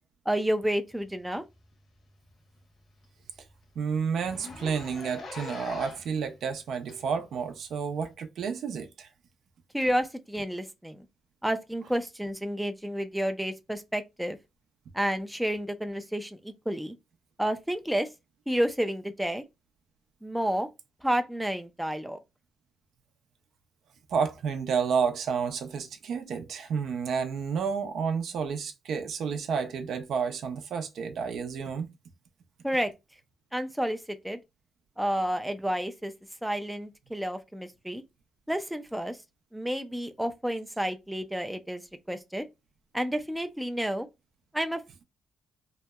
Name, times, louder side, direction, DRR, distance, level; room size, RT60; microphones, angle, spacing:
voice 1, 0.3-1.4 9.7-11.1 11.4-14.4 14.9-17.0 17.4-18.1 18.5-19.4 20.2-20.7 21.0-22.2 32.6-32.9 33.5-34.4 35.0-36.1 36.4-38.0 38.5-39.2 39.5-41.8 42.1-42.4 42.9-44.1 44.5-44.8, equal, 5° right, 0.4 m, -30 dB
Zipper (clothing), 1.5-1.7 2.1-2.2 2.6-2.7 3.0-3.1 3.4-3.5 4.2-6.2 6.9-7.0 8.0-8.1, left 3 dB, 55° left, 0.9 m, -42 dB
voice 2, 3.8-9.1 24.1-31.9, right 6 dB, 70° right, 0.4 m, -30 dB
2.7 x 2.1 x 2.2 m
cardioid pair, 90°, 0 cm